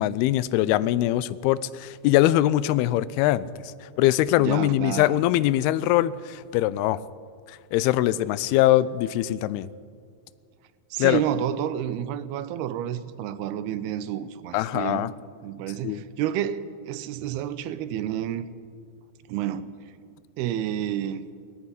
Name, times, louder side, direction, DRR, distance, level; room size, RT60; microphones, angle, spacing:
voice 1, 0.0-7.0 7.5-9.7 11.0-11.2 14.5-15.1 15.8-16.0, left 14 dB, 85° left, 17 dB, 2.6 m, -22 dB
voice 2, 4.4-5.3 10.9-15.1 15.4-18.5 19.3-19.7 20.4-21.2, right 10 dB, 85° right, 14 dB, 2.8 m, -30 dB
20.0 x 14.0 x 9.8 m, 2.2 s
omnidirectional pair, 4.5 m